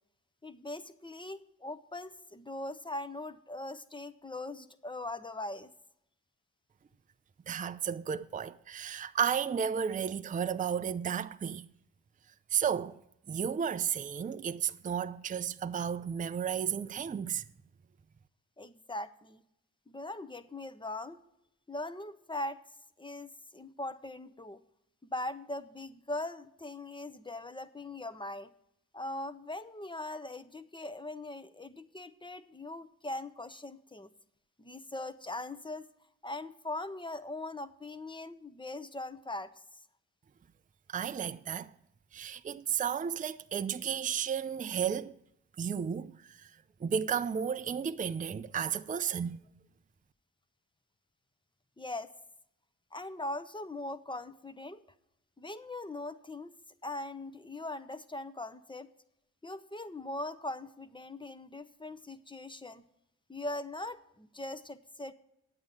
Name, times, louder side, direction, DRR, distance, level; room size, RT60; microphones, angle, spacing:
voice 1, 0.4-5.7 18.6-19.4 19.9-21.2 21.7-22.6 23.0-24.6 25.0-28.5 28.9-34.1 34.6-35.8 36.2-39.5 51.8-52.1 52.9-54.8 55.4-56.5 56.8-58.9 59.4-62.8 63.3-65.1, left 2 dB, 10° left, 0.8 m, -40 dB
voice 2, 7.5-11.7 12.5-13.0 13.3-17.5 40.9-41.7 42.1-45.2 45.6-46.5 46.8-49.4, right 8 dB, 20° right, 0.5 m, -33 dB
9.8 x 8.7 x 5.6 m
hypercardioid pair, 40°, 40 cm